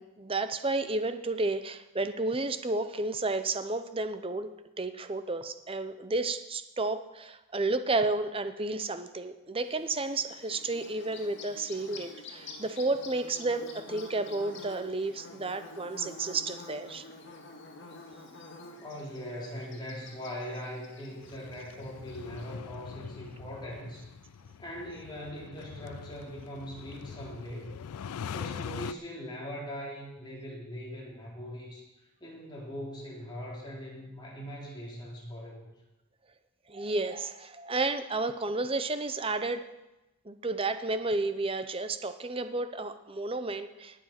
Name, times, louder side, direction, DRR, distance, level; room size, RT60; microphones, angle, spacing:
voice 1, 0.0-4.5 4.8-17.0 36.7-39.6 40.2-44.0, right 2 dB, 25° right, 10 dB, 0.7 m, -32 dB
Bird / Buzz, 9.6-22.5, left 3 dB, 55° left, 2.2 m, -48 dB
voice 2, 18.8-24.0 24.6-27.7 28.3-31.9 32.2-35.7, equal, 20° left, -4 dB, 3.6 m, -41 dB
sound 1, 21.2-28.9, left 7 dB, 85° left, 0.4 m, -43 dB
19.5 x 7.5 x 5.9 m, 1.0 s
head